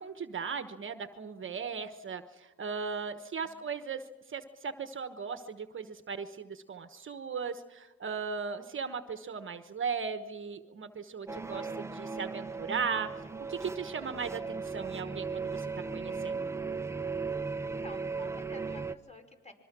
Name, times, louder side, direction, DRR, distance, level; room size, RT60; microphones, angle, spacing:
voice 1, 0.0-4.0 4.3-13.1 13.5-15.7 15.9-16.4, right 5 dB, 40° right, 9 dB, 1.2 m, -37 dB
sound 1, 11.3-19.0, right 4 dB, 10° right, 0.8 m, -37 dB
voice 2, 17.6-19.5, left 1 dB, 20° left, 4 dB, 5.4 m, -51 dB
26.0 x 23.0 x 6.1 m, 1.1 s
cardioid pair, 90°, 30 cm